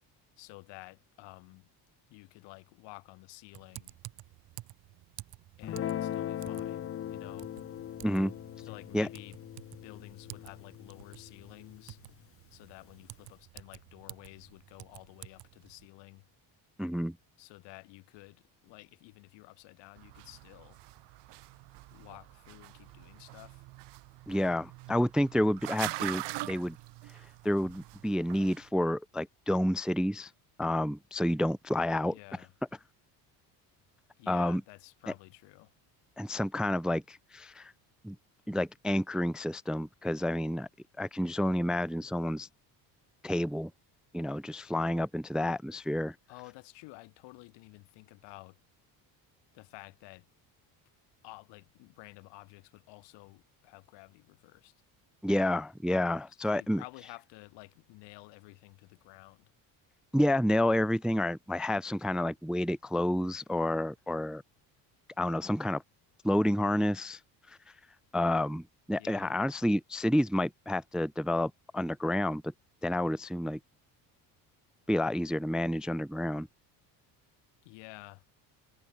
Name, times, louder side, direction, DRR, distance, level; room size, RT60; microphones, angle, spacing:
voice 1, 0.4-1.7 2.1-3.9 5.6-7.5 8.6-9.4 9.7-12.0 12.5-16.2 17.4-20.8 21.9-23.6 32.0-32.5 34.2-35.7 46.3-48.6 49.5-50.3 51.2-54.7 56.5-59.5 69.0-69.4 77.6-78.2, left 24 dB, 85° left, 3.8 m, -52 dB
Typing, 3.5-15.9, right 16 dB, 60° right, 1.2 m, -52 dB
Guitar, 5.6-12.2, left 11 dB, 35° left, 0.7 m, -40 dB
voice 2, 16.8-17.2 24.3-26.8 27.4-30.3 30.6-32.1 34.3-34.6 36.2-37.7 38.0-38.2 38.5-40.7 41.0-42.5 43.2-43.7 44.1-46.1 55.2-56.8 60.1-64.4 65.2-65.8 66.2-67.2 67.5-67.6 68.1-72.5 72.8-73.6 74.9-76.5, left 1 dB, ahead, 0.3 m, -29 dB
sound 1, 20.0-28.7, right 20 dB, 75° right, 2.4 m, -43 dB
cardioid pair, 130°, 41 cm